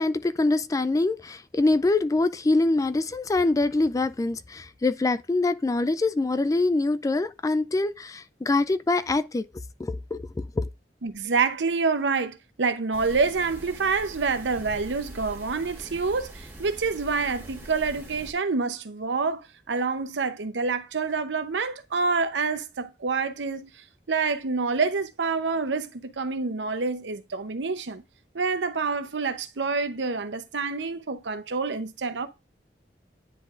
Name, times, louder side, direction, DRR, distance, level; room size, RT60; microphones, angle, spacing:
voice 1, 0.0-9.4 9.8-10.2 10.6-10.7, left 2 dB, 20° left, 0.3 m, -24 dB
voice 2, 11.0-23.7 24.1-28.0 28.3-32.3, right 4 dB, 90° right, 0.7 m, -27 dB
sound 1, 12.9-18.3, right 1 dB, 15° right, 1.5 m, -43 dB
9.9 x 4.0 x 2.5 m
head